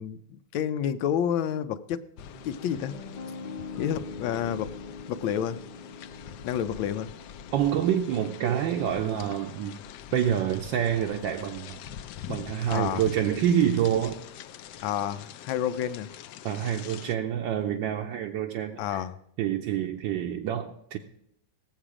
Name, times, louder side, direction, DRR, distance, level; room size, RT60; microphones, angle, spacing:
voice 1, 0.0-2.0 2.4-2.9 3.8-4.7 5.1-5.6 6.4-7.1 12.7-13.0 14.8-16.1 18.8-19.1, left 9 dB, 90° left, 11 dB, 1.4 m, -29 dB
sound 1, 2.2-17.2, left 9 dB, 70° left, 1.1 m, -44 dB
Piano, 2.3-10.4, left 4 dB, 25° left, 1.0 m, -44 dB
voice 2, 7.5-9.8 10.1-11.8 12.3-14.2 16.4-19.0 19.4-21.0, right 10 dB, 75° right, 2 dB, 1.4 m, -27 dB
18.0 x 7.4 x 4.9 m, 0.75 s
omnidirectional pair, 2.1 m